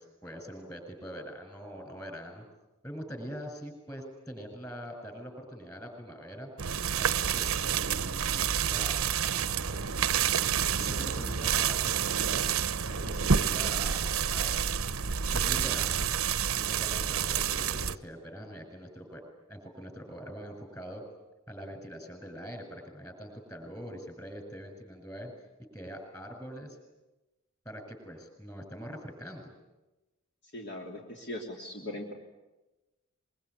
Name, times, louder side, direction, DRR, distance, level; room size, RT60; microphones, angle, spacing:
voice 1, 0.0-2.4 2.8-6.5 7.0-9.0 9.2-9.9 10.7-14.0 14.3-16.1 16.5-19.2 19.5-21.0 21.5-25.3 25.7-26.8 27.7-29.5, equal, 15° left, 4 dB, 7.0 m, -43 dB
sound 1, 6.6-18.0, right 7 dB, 70° right, 0.8 m, -29 dB
voice 2, 30.5-32.1, left 1 dB, 50° left, 0 dB, 3.2 m, -39 dB
24.0 x 23.0 x 9.7 m, 1.0 s
head